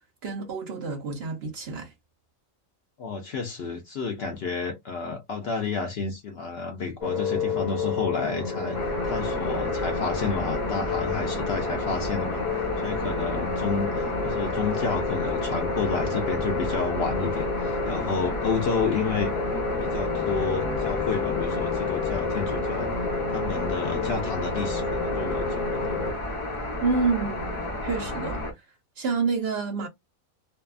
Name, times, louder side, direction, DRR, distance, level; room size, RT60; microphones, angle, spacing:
voice 1, 0.2-1.9 26.8-28.4 29.0-29.9, right 4 dB, 60° right, 0.8 m, -28 dB
voice 2, 3.0-8.8 9.0-19.3 19.8-22.9 23.3-26.0, left 5 dB, 65° left, 0.6 m, -30 dB
sound 1, 7.0-26.1, left 4 dB, 45° left, 1.5 m, -30 dB
sound 2, 8.7-28.5, left 1 dB, 25° left, 0.9 m, -32 dB
2.7 x 2.3 x 2.3 m
omnidirectional pair, 1.5 m